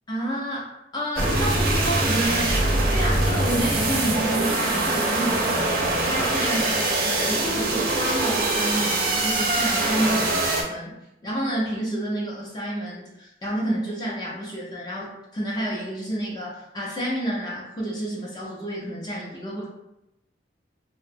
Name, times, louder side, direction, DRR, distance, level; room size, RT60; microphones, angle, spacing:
voice 1, 0.1-10.9 11.2-19.7, right 1 dB, 25° left, -4 dB, 0.5 m, -29 dB
sound 1, 1.2-10.6, right 2 dB, 55° right, 0.5 m, -23 dB
2.6 x 2.1 x 2.5 m, 0.86 s
head